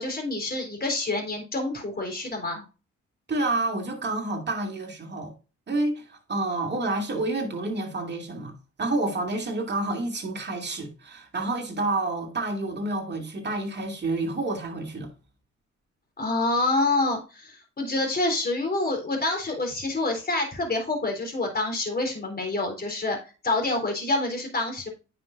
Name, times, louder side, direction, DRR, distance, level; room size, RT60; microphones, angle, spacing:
voice 1, 0.0-2.6 16.2-23.2 23.4-24.9, left 2 dB, 30° left, 3.6 m, -27 dB
voice 2, 3.3-5.3 5.7-8.5 8.8-15.1, right 2 dB, 35° right, 2.5 m, -29 dB
9.2 x 5.9 x 2.6 m
cardioid pair, 90°, 30 cm